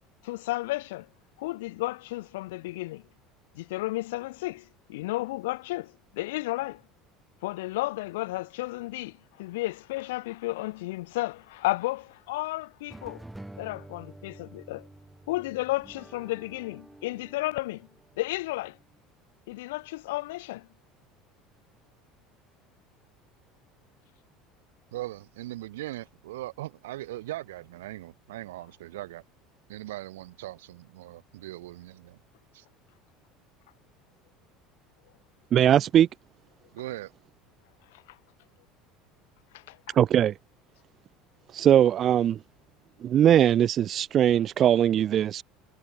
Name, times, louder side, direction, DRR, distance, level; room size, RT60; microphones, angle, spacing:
voice 1, 0.2-1.1 1.4-3.0 3.5-6.8 7.4-13.2 13.6-14.9 15.3-17.9 18.2-18.8 19.5-20.7 39.5-39.8, left 19 dB, 80° left, 0.8 m, -33 dB
sound 1, 12.9-19.1, right 1 dB, 10° right, 3.1 m, -49 dB
voice 2, 24.9-29.2 29.7-32.2 32.5-32.6 36.7-37.1, right 16 dB, 85° right, 6.3 m, -39 dB
voice 3, 35.5-36.1 39.9-40.3 41.5-42.4 43.0-45.4, right 10 dB, 45° right, 0.3 m, -20 dB
hypercardioid pair, 90°, 0 cm